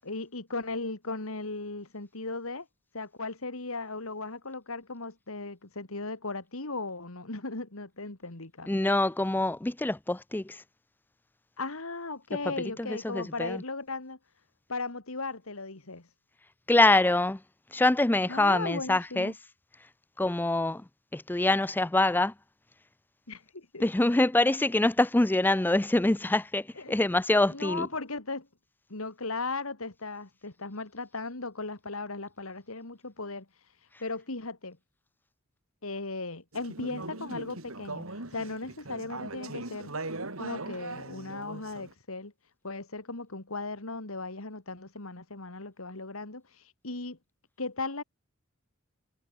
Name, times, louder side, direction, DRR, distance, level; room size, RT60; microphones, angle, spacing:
voice 1, 0.0-2.7 2.9-8.8 11.6-14.2 14.7-16.1 18.3-19.3 23.3-23.8 26.8-27.0 27.5-28.5 28.9-33.5 34.0-34.8 35.8-39.9 40.4-42.3 42.6-47.2 47.6-48.0, left 3 dB, 80° left, 2.6 m, -37 dB
voice 2, 8.7-10.6 12.5-13.6 16.7-17.4 17.7-19.3 20.2-22.3 23.8-27.9, left 2 dB, 10° left, 0.4 m, -25 dB
Conversation / Chatter, 36.5-41.9, right 2 dB, 80° right, 4.5 m, -40 dB
head